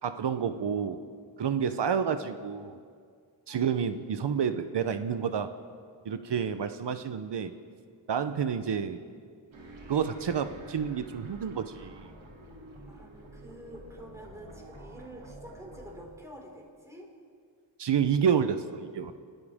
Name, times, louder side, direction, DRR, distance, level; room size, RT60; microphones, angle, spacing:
voice 1, 0.0-1.0 1.4-2.8 3.5-5.5 6.0-7.5 8.1-9.0 9.9-12.1 17.8-19.1, right 7 dB, 65° right, 10 dB, 0.9 m, -29 dB
sound 1, 9.5-16.0, right 1 dB, 85° right, 3.0 m, -48 dB
voice 2, 12.9-17.1, right 1 dB, 5° right, -2 dB, 5.0 m, -48 dB
29.0 x 13.5 x 3.6 m, 2.1 s
cardioid pair, 60°, 46 cm